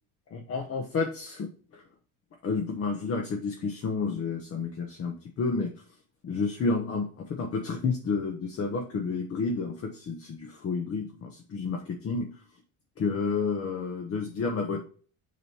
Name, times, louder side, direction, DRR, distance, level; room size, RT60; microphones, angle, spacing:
voice 1, 0.3-1.8 2.4-5.7 6.2-12.3 13.0-14.8, left 4 dB, 35° left, 1 dB, 0.9 m, -30 dB
7.1 x 3.1 x 5.5 m, 0.41 s
cardioid pair, 145°, 40 cm